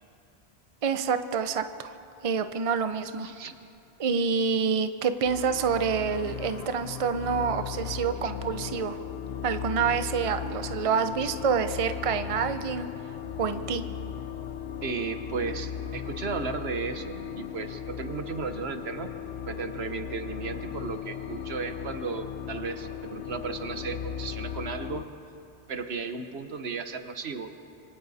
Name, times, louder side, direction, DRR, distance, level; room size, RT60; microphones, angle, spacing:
voice 1, 0.8-1.9 2.2-3.3 4.0-9.0 9.4-12.9 13.4-13.8, right 6 dB, 35° right, 9 dB, 0.7 m, -27 dB
voice 2, 3.2-3.5 8.2-8.3 14.8-19.1 19.5-25.1 25.7-27.5, right 5 dB, 80° right, 8 dB, 1.3 m, -35 dB
sound 1, 5.2-25.0, left 8 dB, 75° left, 1.1 m, -37 dB
26.5 x 24.5 x 4.2 m, 2.6 s
omnidirectional pair, 1.1 m